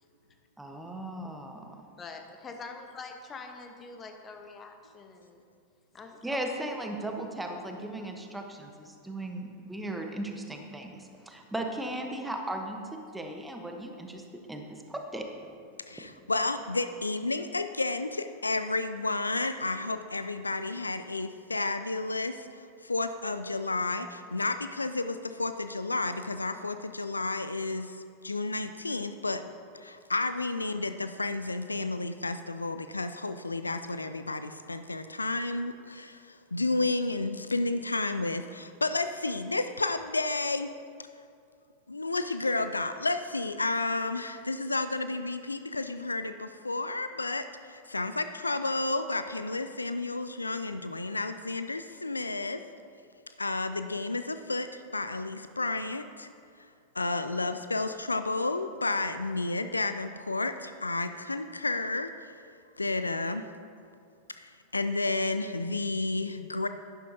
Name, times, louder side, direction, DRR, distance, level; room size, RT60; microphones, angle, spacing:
voice 1, 0.6-1.8 6.2-12.8 13.1-14.2 14.5-15.2, right 1 dB, 5° right, 3 dB, 1.1 m, -37 dB
voice 2, 2.0-5.4 5.9-6.5, left 4 dB, 25° left, 5 dB, 1.0 m, -44 dB
voice 3, 15.9-28.0 28.2-29.5 29.7-40.7 41.9-52.6 53.4-56.3 56.9-62.4 62.8-63.4 64.3-66.7, left 2 dB, 85° left, 10 dB, 0.3 m, -31 dB
11.0 x 11.0 x 2.8 m, 2.3 s
figure-of-eight pair, 90°, 0 cm